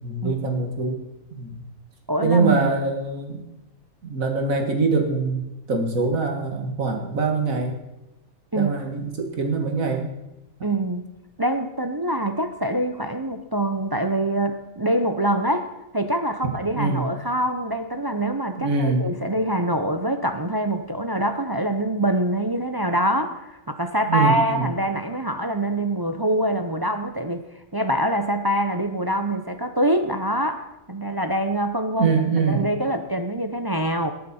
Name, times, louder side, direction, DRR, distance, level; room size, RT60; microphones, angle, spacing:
voice 1, 0.0-1.0 1.4-1.6 2.2-3.4 4.0-5.4 5.7-7.7 8.6-10.1 16.8-17.1 18.6-19.0 24.1-24.7 32.0-32.6, right 4 dB, 70° right, 3 dB, 2.2 m, -23 dB
voice 2, 2.1-2.6 8.5-8.7 10.6-11.0 11.4-15.7 15.9-27.4 27.7-34.1, right 1 dB, 30° right, 7 dB, 0.4 m, -24 dB
18.0 x 9.5 x 4.3 m, 0.94 s
omnidirectional pair, 1.5 m